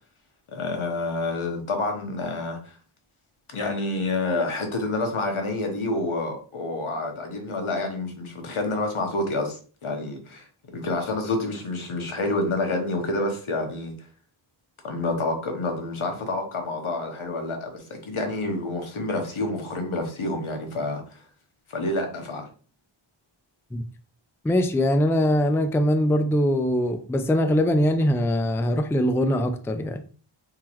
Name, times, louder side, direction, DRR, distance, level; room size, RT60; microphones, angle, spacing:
voice 1, 0.5-2.8 3.5-10.5 10.7-13.9 14.8-21.0 21.7-22.5, left 2 dB, 80° left, 1.0 m, -28 dB
voice 2, 24.4-30.0, equal, 5° left, 0.3 m, -22 dB
3.7 x 2.9 x 3.0 m
wide cardioid pair, 80°, 48 cm